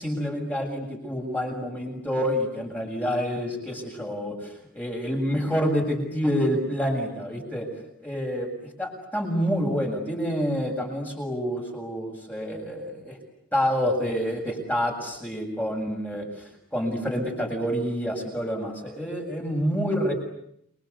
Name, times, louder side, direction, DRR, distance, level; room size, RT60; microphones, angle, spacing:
voice 1, 0.0-7.7 8.0-13.2 13.5-20.1, equal, 5° left, 1 dB, 7.3 m, -28 dB
29.5 x 24.0 x 8.4 m, 0.74 s
head